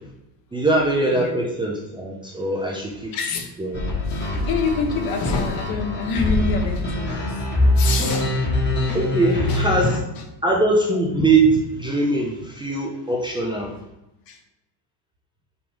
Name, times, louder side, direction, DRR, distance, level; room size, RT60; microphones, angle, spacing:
voice 1, 0.5-3.2 3.6-3.8 8.9-9.9 10.4-13.7, right 2 dB, 10° right, -2 dB, 0.6 m, -21 dB
voice 2, 3.1-3.5 4.1-7.5 7.8-8.4 9.5-9.9 14.3-14.4, left 4 dB, 45° left, 4 dB, 1.2 m, -27 dB
sound 1, 3.7-10.0, left 2 dB, 20° left, 1.3 m, -23 dB
6.1 x 4.9 x 3.4 m, 0.91 s
cardioid pair, 145°, 49 cm